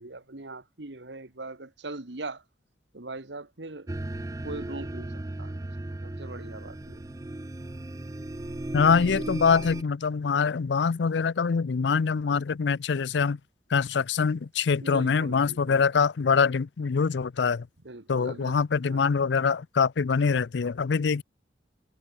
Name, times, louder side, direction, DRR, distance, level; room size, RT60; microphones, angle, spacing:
voice 1, 0.0-2.4 2.9-3.9 4.4-7.0 14.8-15.9 17.8-18.6 18.9-19.1, right 2 dB, 75° right, 1.8 m, -41 dB
sound 1, 3.9-9.8, right 1 dB, 20° right, 0.4 m, -36 dB
voice 2, 8.7-13.4 13.7-17.7 18.1-21.2, left 5 dB, 75° left, 0.5 m, -24 dB
head